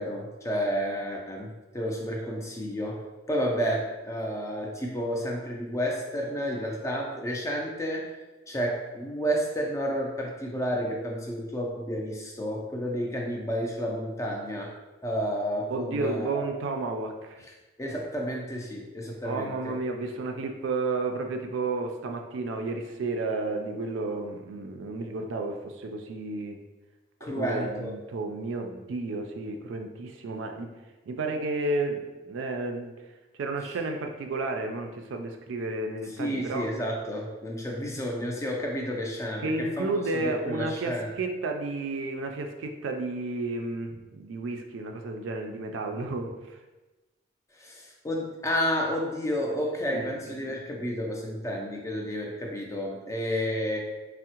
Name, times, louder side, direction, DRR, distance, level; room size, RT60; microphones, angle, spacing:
voice 1, 0.0-8.1 8.5-14.7 15.0-16.5 17.8-19.7 27.2-27.9 36.2-41.1 47.5-53.8, equal, 15° left, 0 dB, 0.4 m, -31 dB
voice 2, 15.7-17.4 19.2-26.6 27.2-30.7 31.1-32.9 33.4-36.7 39.4-46.6 49.9-50.3, right 3 dB, 75° right, 4 dB, 0.3 m, -32 dB
3.5 x 2.0 x 2.8 m, 1.1 s
head